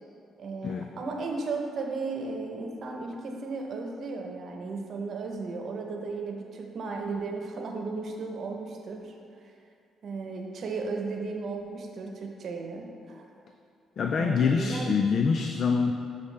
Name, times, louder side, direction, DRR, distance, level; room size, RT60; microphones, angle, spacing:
voice 1, 0.4-9.2 10.0-13.3 14.2-15.1, right 3 dB, 60° right, 2 dB, 0.9 m, -35 dB
voice 2, 14.0-15.9, left 5 dB, 55° left, 4 dB, 0.4 m, -25 dB
8.3 x 5.6 x 3.3 m, 2.4 s
cardioid pair, 90°, 0 cm